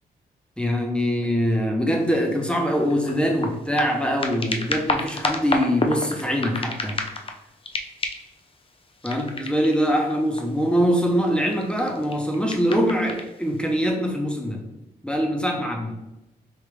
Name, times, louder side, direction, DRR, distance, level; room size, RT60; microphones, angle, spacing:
voice 1, 0.6-7.0 9.0-14.6 15.0-15.9, equal, 5° left, 1 dB, 1.0 m, -23 dB
sound 1, 2.0-2.1 2.5-7.4 7.6-8.4 9.0-10.7 11.4-13.3 13.9-14.0, left 3 dB, 30° left, 0.6 m, -30 dB
5.0 x 2.8 x 3.4 m, 0.92 s
supercardioid pair, 55°, 18 cm